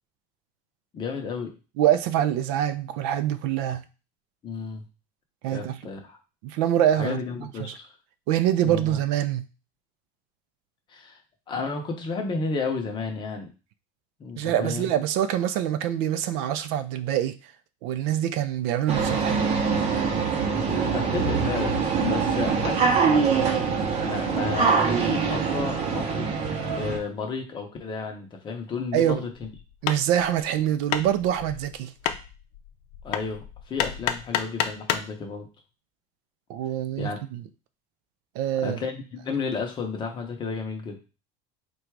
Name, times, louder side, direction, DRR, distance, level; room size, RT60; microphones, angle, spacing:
voice 1, 0.9-1.5 4.4-4.8 5.5-6.2 7.0-7.9 8.6-8.9 10.9-11.2 11.5-13.5 14.2-14.9 19.0-19.1 20.9-23.4 24.0-26.3 26.8-29.5 33.0-35.5 37.0-37.2 38.6-41.0, left 4 dB, 25° left, 0.7 m, -32 dB
voice 2, 1.8-3.8 5.4-5.8 6.4-7.2 7.6-7.7 8.3-9.4 14.4-17.4 17.8-19.5 28.9-29.2 29.8-31.9 36.5-37.4 38.4-38.8, right 11 dB, 70° right, 0.4 m, -25 dB
sound 1, 18.9-27.0, right 5 dB, 35° right, 0.7 m, -24 dB
Hammer, 29.3-35.2, left 9 dB, 90° left, 0.5 m, -31 dB
3.8 x 2.3 x 4.5 m
cardioid pair, 170°, 19 cm